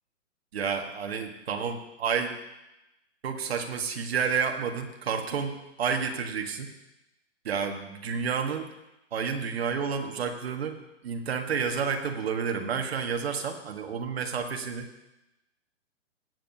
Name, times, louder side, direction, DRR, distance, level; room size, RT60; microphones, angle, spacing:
voice 1, 0.5-2.3 3.2-6.7 7.4-8.7 9.1-10.8 11.0-14.9, right 6 dB, 55° right, 4 dB, 1.4 m, -30 dB
17.0 x 8.9 x 2.7 m, 0.94 s
hypercardioid pair, 170°, 38 cm